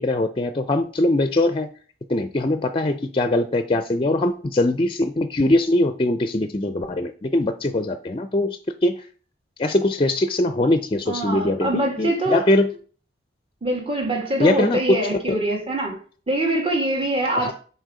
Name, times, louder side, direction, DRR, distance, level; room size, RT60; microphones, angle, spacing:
voice 1, 0.0-1.7 2.1-9.0 9.6-12.7 14.4-15.0 17.4-17.5, left 1 dB, 30° left, 0.5 m, -22 dB
voice 2, 11.1-12.4 13.6-16.0 16.3-17.5, right 1 dB, 30° right, 2.1 m, -24 dB
6.5 x 4.4 x 4.9 m
head